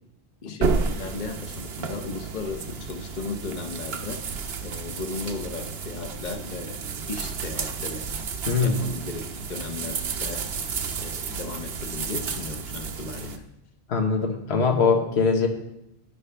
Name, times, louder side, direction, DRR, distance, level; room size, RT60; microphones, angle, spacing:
voice 1, 0.4-4.3 4.6-8.1 8.6-10.5 11.0-13.5, left 4 dB, 50° left, 6 dB, 0.9 m, -36 dB
sound 1, 0.6-13.4, right 5 dB, 80° right, 1.0 m, -32 dB
voice 2, 8.5-8.8 13.9-15.5, left 5 dB, 90° left, 3 dB, 1.4 m, -22 dB
10.5 x 9.8 x 3.3 m, 0.84 s
omnidirectional pair, 1.1 m